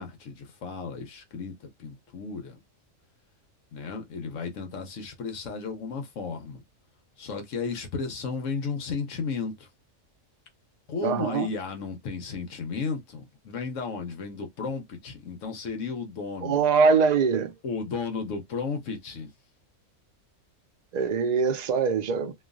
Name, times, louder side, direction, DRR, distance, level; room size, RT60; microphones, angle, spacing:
voice 1, 0.0-1.5 1.8-2.6 3.7-6.6 7.2-9.7 10.9-16.6 17.6-19.3, left 5 dB, 70° left, 1.1 m, -34 dB
voice 2, 11.0-11.5 16.4-17.5 20.9-22.3, right 5 dB, 65° right, 0.4 m, -23 dB
3.1 x 2.3 x 2.4 m
omnidirectional pair, 1.4 m